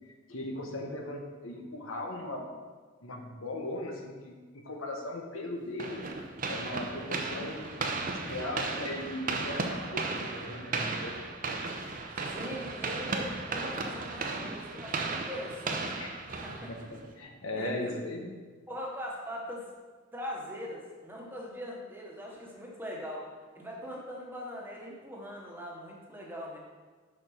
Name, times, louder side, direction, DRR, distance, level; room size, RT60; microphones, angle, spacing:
voice 1, 0.3-2.5 3.0-6.0 6.5-11.2 16.0-16.2 16.7-18.3, left 1 dB, 80° left, 2 dB, 1.2 m, -38 dB
sound 1, 5.8-17.1, right 3 dB, 45° right, 0.7 m, -35 dB
voice 2, 12.1-16.0 16.3-16.9 17.6-18.0 18.7-19.7 20.1-23.3 23.5-26.6, equal, 10° right, -2 dB, 1.3 m, -41 dB
6.6 x 5.2 x 5.8 m, 1.4 s
head